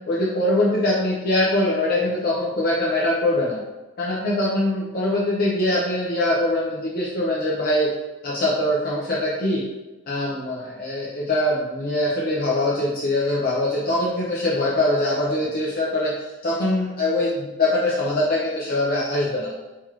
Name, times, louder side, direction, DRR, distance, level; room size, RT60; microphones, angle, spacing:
voice 1, 0.1-3.6 4.0-7.9 8.2-9.7 10.1-19.5, left 1 dB, 45° left, -5 dB, 0.7 m, -23 dB
3.9 x 2.9 x 4.5 m, 1.1 s
head